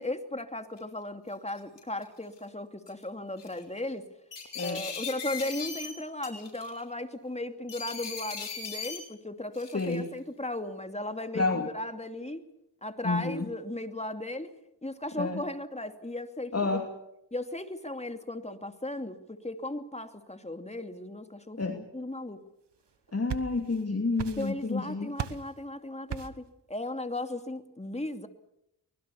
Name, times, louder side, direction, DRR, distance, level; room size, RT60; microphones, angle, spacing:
voice 1, 0.0-4.1 4.6-12.5 12.8-14.5 14.8-16.8 17.3-22.4 24.4-28.3, left 1 dB, 15° left, 7 dB, 2.6 m, -36 dB
sound 1, 0.8-0.9 1.5-2.0 2.9-3.0 3.4-3.6 4.3-5.9 6.2-6.8 7.7-9.0 9.5-10.0, left 6 dB, 85° left, 6.5 m, -38 dB
voice 2, 9.7-10.1 11.3-11.7 13.0-13.5 15.2-15.4 16.5-16.9 21.6-21.8 23.1-25.1, left 3 dB, 35° left, 4 dB, 2.7 m, -29 dB
sound 2, 22.9-23.8 24.2-24.8 25.2-25.5 26.1-26.5, right 8 dB, 80° right, 1.4 m, -37 dB
24.5 x 21.0 x 7.1 m, 0.82 s
cardioid pair, 50°, 41 cm